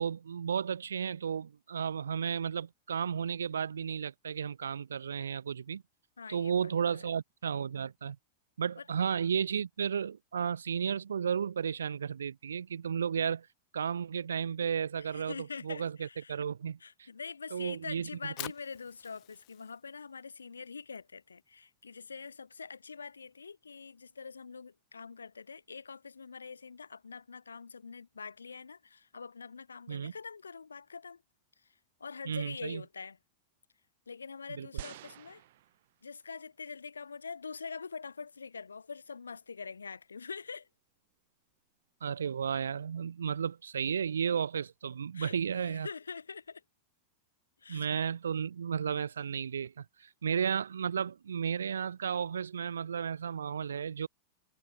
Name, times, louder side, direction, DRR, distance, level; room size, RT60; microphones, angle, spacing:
voice 1, 0.0-5.8 6.3-8.2 8.6-13.5 13.7-16.8 17.5-18.5 29.9-30.1 32.3-32.8 34.5-34.8 42.0-45.9 47.7-54.1, right 7 dB, 75° right, 0.4 m, -33 dB
voice 2, 6.2-7.1 8.8-8.9 15.0-16.4 16.8-31.2 32.0-33.2 34.1-35.4 36.0-40.7 45.1-46.6 47.6-47.9, left 5 dB, 85° left, 1.6 m, -44 dB
Fire, 18.1-24.3, left 27 dB, 45° left, 0.9 m, -51 dB
sound 1, 34.8-36.3 37.0-37.1, right 15 dB, 60° right, 1.2 m, -46 dB
figure-of-eight pair, 95°, 0 cm